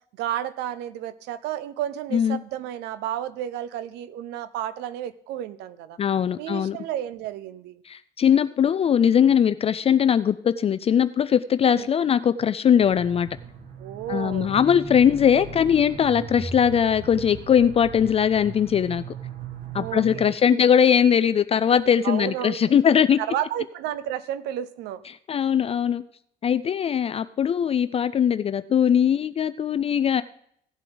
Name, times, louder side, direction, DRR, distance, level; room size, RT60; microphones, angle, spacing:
voice 1, 0.2-6.0 6.4-7.8 11.7-11.9 13.8-14.5 16.4-16.5 19.8-20.7 22.0-25.0, right 11 dB, 90° right, 15 dB, 0.8 m, -32 dB
voice 2, 6.0-6.8 7.9-13.3 14.1-19.0 19.7-23.2 25.1-26.0 26.4-30.2, left 8 dB, 35° left, 13 dB, 0.4 m, -20 dB
sound 1, 12.8-20.3, right 4 dB, 55° right, 1.9 m, -38 dB
16.5 x 8.1 x 3.9 m, 0.68 s
cardioid pair, 110°, 17 cm